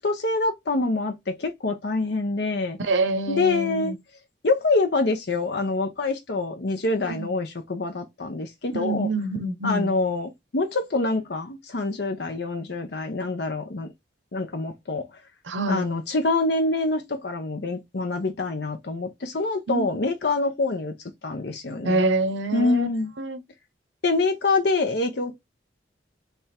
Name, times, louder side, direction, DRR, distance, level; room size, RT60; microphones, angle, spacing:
voice 1, 0.0-2.8 3.3-3.9 4.4-9.1 9.6-13.9 14.3-15.0 15.7-20.9 21.2-22.0 22.5-23.1 24.0-25.4, left 3 dB, 60° left, 0.7 m, -25 dB
voice 2, 2.8-3.9 7.1-7.3 8.7-9.9 15.4-15.9 19.7-19.9 21.8-22.9 23.2-23.4, right 2 dB, 80° right, 0.8 m, -26 dB
3.5 x 3.3 x 4.2 m
head